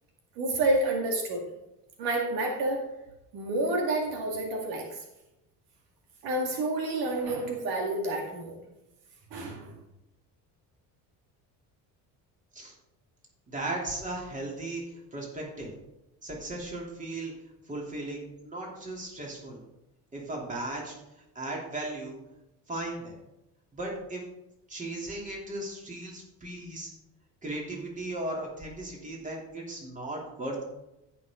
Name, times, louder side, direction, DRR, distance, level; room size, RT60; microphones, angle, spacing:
voice 1, 0.4-1.4 2.0-2.8 3.3-5.0 6.2-8.6 9.3-9.8, right 2 dB, 75° right, 1 dB, 2.1 m, -29 dB
voice 2, 13.5-14.8 15.1-15.7 16.2-17.3 17.7-19.6 20.1-20.9 21.3-22.2 22.7-23.2 23.7-24.2 24.7-26.9 27.4-30.6, right 2 dB, 20° right, -2 dB, 3.0 m, -36 dB
14.5 x 6.0 x 3.7 m, 0.92 s
cardioid pair, 115°, 37 cm